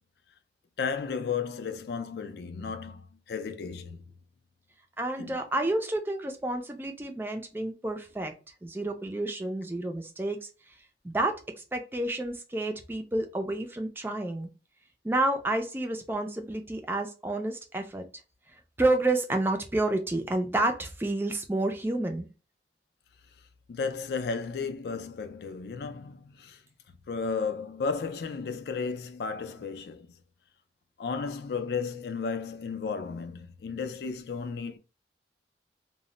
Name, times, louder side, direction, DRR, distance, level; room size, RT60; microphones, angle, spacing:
voice 1, 0.8-4.0 5.2-5.4 23.7-26.6 27.1-30.1 31.0-34.8, left 5 dB, 65° left, 0.4 m, -34 dB
voice 2, 5.0-8.3 8.6-10.5 11.0-11.4 11.7-14.5 15.0-18.1 18.8-22.3, right 2 dB, 10° right, 0.3 m, -29 dB
2.1 x 2.0 x 3.7 m
head